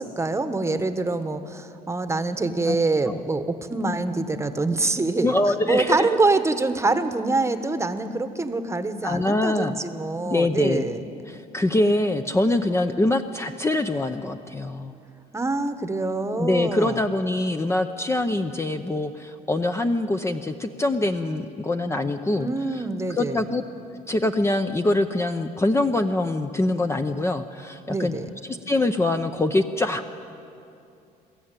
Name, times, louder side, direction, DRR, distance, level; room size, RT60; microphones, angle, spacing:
voice 1, 0.0-5.3 5.7-11.0 15.3-17.0 22.4-23.4 27.9-28.3, right 3 dB, 15° right, 10 dB, 1.1 m, -25 dB
voice 2, 5.2-6.1 9.0-9.7 10.3-10.9 11.3-15.0 16.4-22.8 23.1-23.6 24.1-28.2 28.7-30.0, left 2 dB, 15° left, 7 dB, 0.7 m, -24 dB
22.0 x 14.0 x 8.9 m, 2.6 s
cardioid pair, 110°, 17 cm